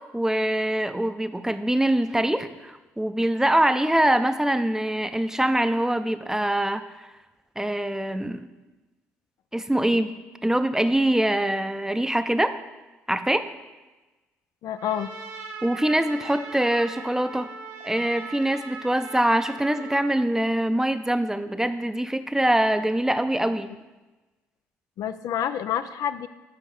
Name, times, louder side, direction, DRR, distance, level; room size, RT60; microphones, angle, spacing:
voice 1, 0.0-7.1 7.6-8.5 9.5-10.1 10.4-12.5 13.1-13.4 15.6-17.5 17.8-23.7, right 1 dB, 10° right, 10 dB, 0.6 m, -24 dB
voice 2, 14.6-15.1 25.0-26.3, left 9 dB, 65° left, 11 dB, 0.4 m, -28 dB
Trumpet, 14.8-20.0, right 4 dB, 70° right, 1.4 m, -40 dB
7.7 x 5.6 x 5.0 m, 1.2 s
hypercardioid pair, 45°, 7 cm